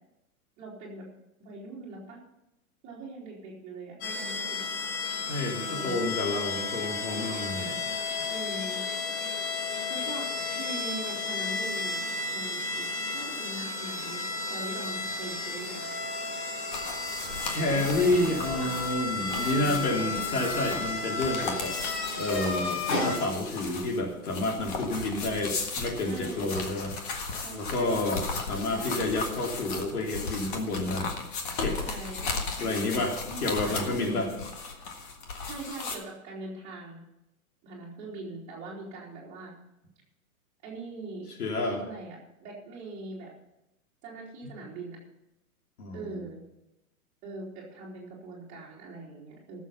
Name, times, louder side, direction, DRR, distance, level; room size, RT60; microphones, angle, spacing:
voice 1, 0.6-1.1 1.4-2.2 2.8-4.7 5.6-6.1 8.3-8.8 9.9-10.3 10.6-12.0 12.3-12.9 13.1-15.8 17.6-18.8 19.4-20.5 24.9-25.0 26.0-26.5 27.4-28.0 28.6-29.0 31.8-32.4 33.0-34.4 35.4-37.0 37.6-39.5 40.6-43.3 44.0-45.0 45.9-46.4 47.2-49.6, right 2 dB, 15° right, -5 dB, 3.4 m, -41 dB
sound 1, 4.0-23.2, left 3 dB, 50° left, 5.1 m, -33 dB
voice 2, 5.3-7.8 17.5-26.9 27.5-31.1 31.6-31.8 32.6-34.3 41.4-41.8 45.8-46.0, left 2 dB, 80° left, 0 dB, 3.4 m, -29 dB
sound 2, 16.7-36.0, left 4 dB, 35° left, 1.7 m, -36 dB
16.0 x 7.4 x 5.7 m, 0.89 s
hypercardioid pair, 175°, 44 cm